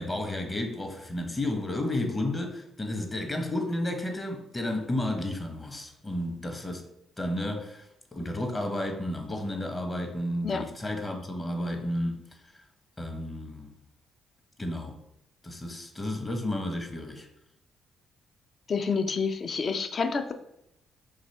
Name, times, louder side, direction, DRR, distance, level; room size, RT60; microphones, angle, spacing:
voice 1, 0.0-6.8 7.2-12.3 13.0-13.7 14.6-15.0 15.4-17.3, left 1 dB, 25° left, 0.8 m, -32 dB
voice 2, 18.7-20.3, left 5 dB, 45° left, 0.4 m, -28 dB
4.1 x 2.9 x 3.1 m
figure-of-eight pair, 40°, 0 cm